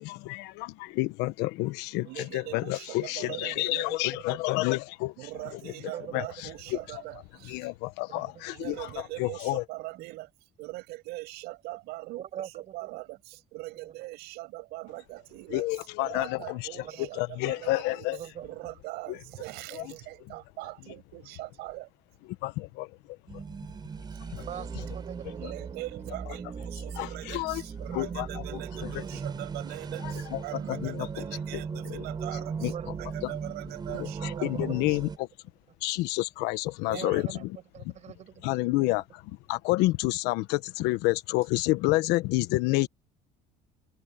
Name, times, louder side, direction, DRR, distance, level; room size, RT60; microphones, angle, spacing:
voice 1, 0.0-5.1 6.1-6.2 7.5-8.7 9.2-9.6 15.5-16.6 17.0-18.2 19.1-19.2 22.4-22.9 23.3-23.4 24.3-24.4 27.0-27.6 27.9-29.0 30.3-30.4 30.7-31.1 31.5-31.6 31.9-32.0 32.6-32.7 33.2-33.3 34.0-35.3 35.8-37.4 38.4-39.2 39.5-42.9, left 20 dB, 80° left, 1.2 m, -29 dB
voice 2, 2.0-3.9 5.2-7.7 8.5-18.1 18.4-21.9 24.1-24.5 25.3-35.0 36.9-37.3, right 21 dB, 75° right, 6.9 m, -42 dB
voice 3, 3.3-4.4 5.9-6.3 6.7-6.9 8.1-8.5 10.0-10.1 12.2-12.9 13.8-13.9 16.8-17.1 18.1-18.7 19.8-20.0 20.3-20.4 24.4-25.7 26.5-26.9 29.9-30.0 30.3-30.5 32.7-33.1 34.2-34.8 36.9-39.0, right 10 dB, 45° right, 5.7 m, -43 dB
sound 1, 23.3-35.2, right 5 dB, 25° right, 6.6 m, -38 dB
cardioid pair, 140°, 17 cm